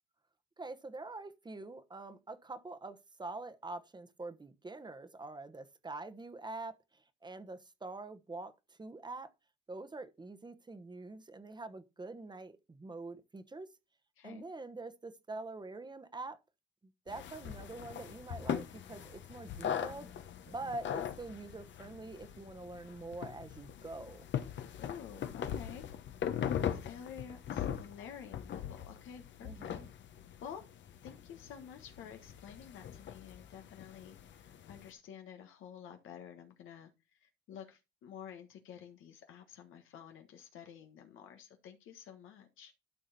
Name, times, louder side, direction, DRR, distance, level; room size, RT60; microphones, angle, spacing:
voice 1, 0.6-9.3 9.7-13.7 14.2-16.4 17.1-20.1 20.5-24.3 29.4-29.9, right 2 dB, 20° right, 1.1 m, -45 dB
sound 1, 17.1-34.9, left 9 dB, 65° left, 1.2 m, -41 dB
voice 2, 24.8-25.9 26.8-29.8 30.4-30.6 31.0-42.7, left 8 dB, 85° left, 1.3 m, -50 dB
12.5 x 4.9 x 4.2 m
cardioid pair, 90°, 20 cm